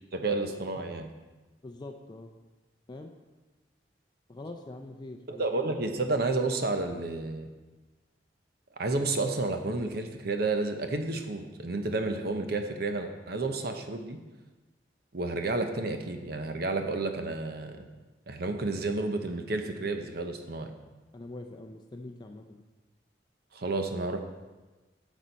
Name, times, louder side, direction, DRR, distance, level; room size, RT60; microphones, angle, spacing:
voice 1, 0.1-1.1 5.3-7.5 8.8-14.2 15.1-17.9 18.3-20.7 23.5-24.2, right 3 dB, 60° right, 6 dB, 0.8 m, -31 dB
voice 2, 1.6-2.3 2.9-3.1 4.3-5.4 21.1-22.6, left 2 dB, 25° left, 4 dB, 0.5 m, -43 dB
9.8 x 6.3 x 4.0 m, 1.2 s
head